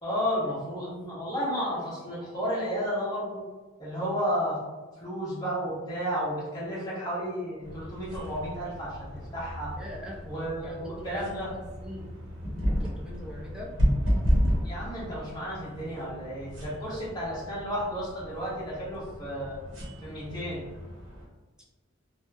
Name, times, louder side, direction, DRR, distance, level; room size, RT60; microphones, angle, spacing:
voice 1, 0.0-3.4 3.8-4.6 5.0-9.7 10.2-11.5 14.6-19.6 20.0-20.6, equal, 20° left, -7 dB, 0.9 m, -32 dB
sound 1, 7.6-21.3, equal, 65° right, 0.8 m, -32 dB
voice 2, 9.8-10.3 10.6-12.2 12.7-13.8, equal, 5° right, -4 dB, 0.5 m, -42 dB
3.0 x 2.0 x 2.2 m, 1.3 s
head